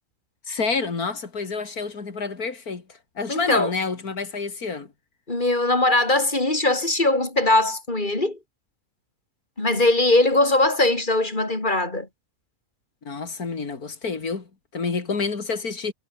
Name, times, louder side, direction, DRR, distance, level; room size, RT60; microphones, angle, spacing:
voice 1, 0.5-4.9 13.0-15.9, left 4 dB, 90° left, 3.2 m, -29 dB
voice 2, 3.3-3.7 5.3-8.4 9.6-12.1, left 2 dB, 30° left, 4.6 m, -21 dB
omnidirectional pair, 1.5 m